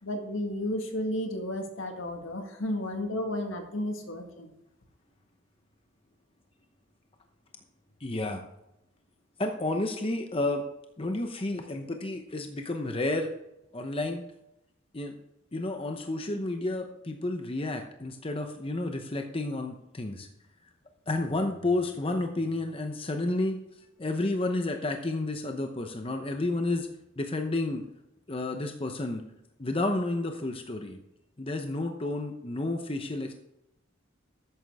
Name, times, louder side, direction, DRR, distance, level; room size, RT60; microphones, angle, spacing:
voice 1, 0.0-4.5, left 1 dB, 75° left, 4 dB, 1.8 m, -33 dB
voice 2, 8.0-8.4 9.4-10.7 11.0-13.3 13.7-14.2 14.9-15.2 15.5-20.3 21.1-23.6 24.0-26.9 27.2-27.8 28.3-29.2 29.6-31.0 31.4-33.3, left 2 dB, 25° left, 5 dB, 0.8 m, -31 dB
13.0 x 9.0 x 3.5 m, 0.85 s
head